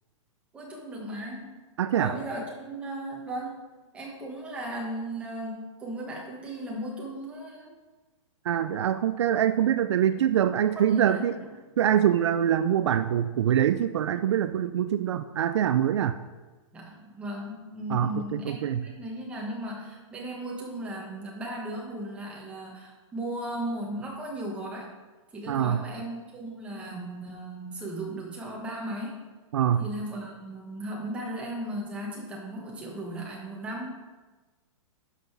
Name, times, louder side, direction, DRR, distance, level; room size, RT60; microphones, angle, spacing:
voice 1, 0.5-1.5 1.9-3.6 3.9-7.7 10.8-11.2 16.7-24.9 25.3-29.2 29.8-33.9, right 1 dB, 5° right, -2 dB, 1.3 m, -36 dB
voice 2, 1.8-2.2 8.4-11.4 11.8-16.2 17.9-18.9 25.5-25.8 29.5-29.9, right 10 dB, 60° right, 11 dB, 0.4 m, -24 dB
11.5 x 5.4 x 4.6 m, 1.3 s
hypercardioid pair, 175°, 17 cm